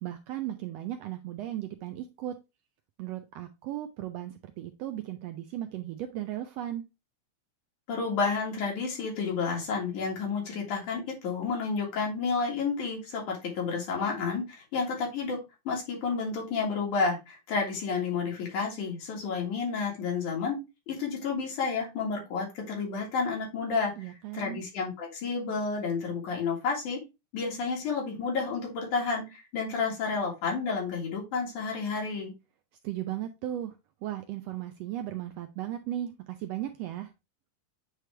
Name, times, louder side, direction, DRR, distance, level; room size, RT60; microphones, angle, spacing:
voice 1, 0.0-2.3 3.0-6.8 24.0-24.6 32.8-37.1, right 12 dB, 80° right, 7 dB, 1.5 m, -36 dB
voice 2, 7.9-15.4 15.7-20.6 20.9-27.0 27.3-32.3, left 5 dB, 85° left, -1 dB, 3.4 m, -31 dB
9.0 x 3.3 x 3.2 m, 0.25 s
omnidirectional pair, 3.4 m